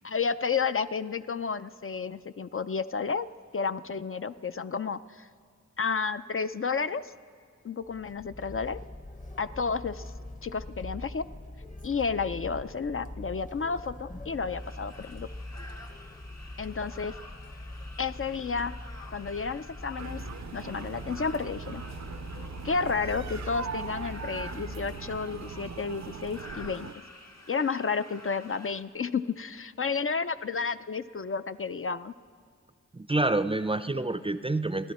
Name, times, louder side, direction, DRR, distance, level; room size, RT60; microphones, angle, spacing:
voice 1, 0.0-3.3 3.5-5.3 5.8-7.1 7.6-8.8 9.4-10.0 10.4-11.3 11.8-15.3 16.6-17.2 18.0-18.8 19.1-20.2 20.5-21.8 22.6-26.9 27.5-32.1, left 5 dB, 45° left, 12 dB, 0.4 m, -31 dB
sound 1, 7.8-26.1, left 1 dB, 25° left, 0.8 m, -43 dB
sound 2, 14.5-28.8, left 2 dB, 65° left, 1.4 m, -50 dB
sound 3, 20.0-26.9, right 7 dB, 65° right, 0.5 m, -41 dB
voice 2, 32.9-34.9, right 2 dB, 20° right, 12 dB, 0.4 m, -28 dB
29.5 x 11.0 x 4.2 m, 2.1 s
wide cardioid pair, 55°, 30 cm